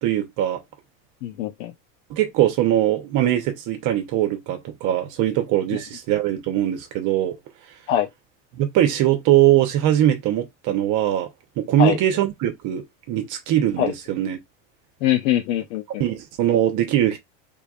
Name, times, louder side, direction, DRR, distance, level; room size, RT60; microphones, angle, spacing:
voice 1, 0.0-0.6 2.1-7.4 8.5-11.3 11.6-14.4 16.0-17.2, right 12 dB, 50° right, 1.0 m, -21 dB
voice 2, 1.2-1.7 5.7-5.8 7.9-8.1 11.8-12.0 13.8-13.9 15.0-16.0, left 12 dB, 80° left, 0.7 m, -23 dB
3.5 x 3.3 x 2.4 m
supercardioid pair, 115°, 39 cm